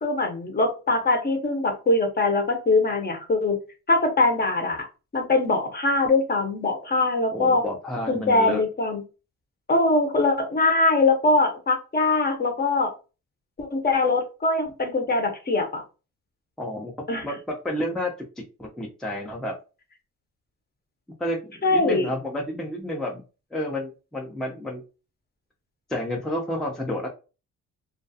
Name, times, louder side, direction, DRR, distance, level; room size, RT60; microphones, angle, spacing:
voice 1, 0.0-3.6 3.9-4.9 5.1-7.6 8.1-9.0 9.7-12.9 13.6-15.8 17.1-17.2 21.6-22.1, left 2 dB, 30° left, 5 dB, 0.7 m, -22 dB
voice 2, 7.3-8.6 16.6-16.9 17.2-17.4 17.6-18.1 18.6-19.5 21.2-23.2 23.5-24.8 25.9-27.1, left 1 dB, ahead, -1 dB, 0.5 m, -30 dB
2.3 x 2.3 x 2.6 m, 0.32 s
cardioid pair, 90°, 30 cm